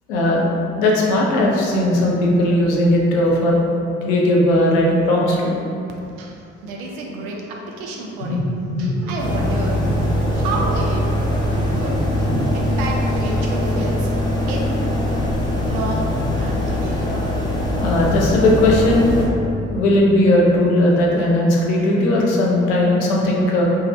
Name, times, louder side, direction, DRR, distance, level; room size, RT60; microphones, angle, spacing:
voice 1, 0.1-0.5 0.8-3.6 4.0-5.5 8.2-8.4 8.7-9.0 17.8-19.1 19.7-23.6, left 1 dB, 70° left, -3 dB, 0.6 m, -17 dB
voice 2, 6.2-8.4 8.8-14.8 15.2-16.1 16.3-17.1, right 2 dB, 65° right, -1 dB, 0.6 m, -31 dB
sound 1, 9.2-19.3, left 1 dB, 10° left, 0.8 m, -21 dB
2.6 x 2.4 x 3.1 m, 2.6 s
figure-of-eight pair, 45°, 35 cm